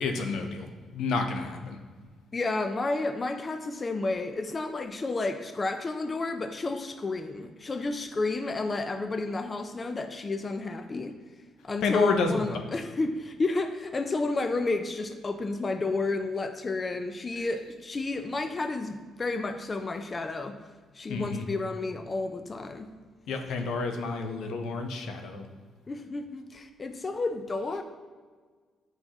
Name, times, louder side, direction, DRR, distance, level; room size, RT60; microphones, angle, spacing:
voice 1, 0.0-0.7 0.9-1.8 11.8-12.4 17.4-17.5 21.1-21.5 23.3-25.5, left 4 dB, 80° left, 5 dB, 0.7 m, -29 dB
voice 2, 2.3-11.2 11.6-20.6 20.9-22.9 25.9-27.8, left 3 dB, 30° left, 7 dB, 0.5 m, -31 dB
7.7 x 5.7 x 2.9 m, 1.5 s
cardioid pair, 90°, 0 cm